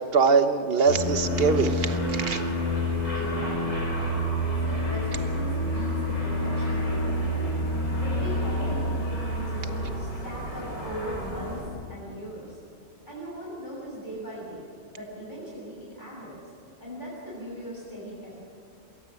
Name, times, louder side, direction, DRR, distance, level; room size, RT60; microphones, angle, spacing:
voice 1, 0.0-2.4, right 5 dB, 50° right, 9 dB, 1.4 m, -23 dB
sound 1, 0.9-11.6, equal, 75° left, 6.7 m, -28 dB
voice 2, 3.1-4.2 4.6-7.6 8.0-12.6 13.1-14.6 14.9-16.4 16.8-18.4, equal, 35° left, -6 dB, 7.0 m, -39 dB
22.5 x 17.0 x 7.8 m, 2.4 s
omnidirectional pair, 1.3 m